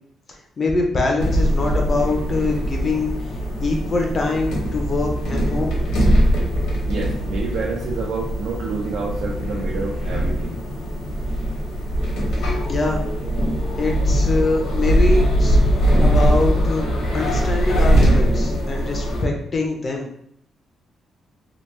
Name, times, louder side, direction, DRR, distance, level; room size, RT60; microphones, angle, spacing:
voice 1, 0.6-3.3 3.6-5.8 12.7-13.0 13.8-15.6 16.0-20.1, left 2 dB, 30° left, 1 dB, 0.4 m, -24 dB
sound 1, 1.2-19.2, equal, 80° left, 0.8 m, -21 dB
voice 2, 6.9-10.6, right 4 dB, 65° right, -2 dB, 0.4 m, -28 dB
2.8 x 2.1 x 3.1 m, 0.70 s
cardioid pair, 165°, 0 cm